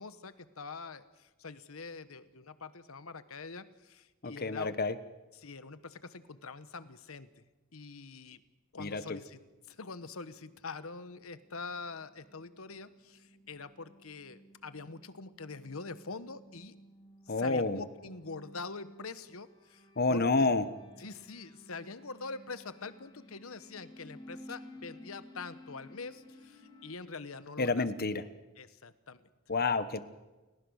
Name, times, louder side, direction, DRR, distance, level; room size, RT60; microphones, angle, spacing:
voice 1, 0.0-4.7 5.3-7.4 7.7-8.4 8.7-9.4 9.7-16.8 17.3-20.5 21.0-27.9 28.6-29.3, left 4 dB, 85° left, 13 dB, 1.2 m, -45 dB
voice 2, 4.2-5.0 8.8-9.2 17.3-17.8 20.0-20.6 27.6-28.2 29.5-30.0, left 3 dB, 45° left, 12 dB, 1.2 m, -29 dB
sound 1, 9.0-26.9, left 1 dB, 20° left, 2.6 m, -56 dB
29.5 x 17.0 x 6.5 m, 1.2 s
head